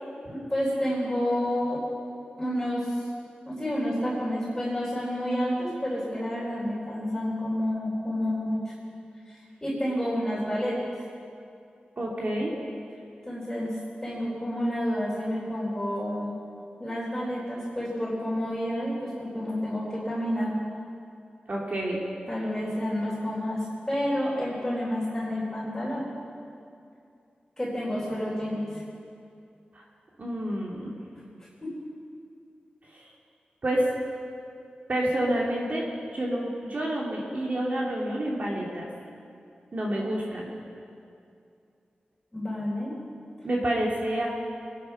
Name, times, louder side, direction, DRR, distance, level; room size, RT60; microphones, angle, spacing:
voice 1, 0.5-1.8 2.4-3.1 3.5-8.7 9.6-10.8 13.2-13.7 14.0-16.3 16.8-20.5 22.3-23.6 23.9-26.0 27.6-28.8 31.6-31.7 42.3-42.9, equal, 15° left, -8 dB, 4.0 m, -29 dB
voice 2, 12.0-12.5 21.5-22.0 29.7-29.8 30.2-31.0 32.9-33.1 33.6-33.9 34.9-35.8 36.1-38.9 39.7-40.5 43.4-44.3, right 1 dB, 50° right, -3 dB, 2.6 m, -28 dB
22.5 x 10.0 x 5.8 m, 2.5 s
wide cardioid pair, 90°, 3 cm